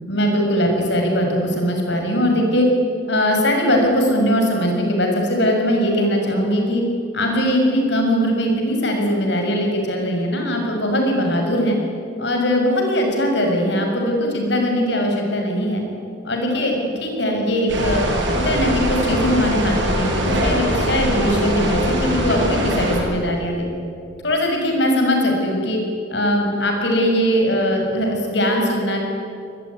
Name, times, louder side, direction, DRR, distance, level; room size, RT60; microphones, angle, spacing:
voice 1, 0.1-2.7 3.1-6.8 7.1-11.8 12.2-15.8 16.2-18.0 18.3-23.7 24.2-25.8 26.1-29.0, equal, 60° left, 2 dB, 6.4 m, -20 dB
sound 1, 17.7-23.0, equal, 65° right, 7.2 m, -22 dB
24.5 x 21.0 x 9.7 m, 2.6 s
head